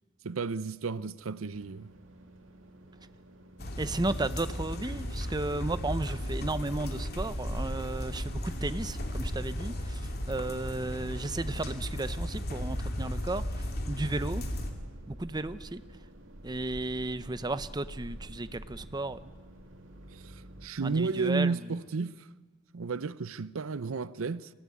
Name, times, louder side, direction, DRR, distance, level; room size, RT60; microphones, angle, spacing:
voice 1, 0.2-1.9 20.1-20.4 20.6-22.3 22.7-24.5, right 4 dB, 85° right, 0.6 m, -32 dB
sound 1, 1.5-20.7, right 1 dB, 65° right, 2.6 m, -46 dB
sound 2, 3.6-14.7, equal, 50° left, 2.6 m, -35 dB
voice 2, 3.8-14.4 15.1-15.8 16.4-19.2 20.8-21.7, right 2 dB, 20° right, 0.7 m, -34 dB
24.5 x 16.0 x 9.7 m
head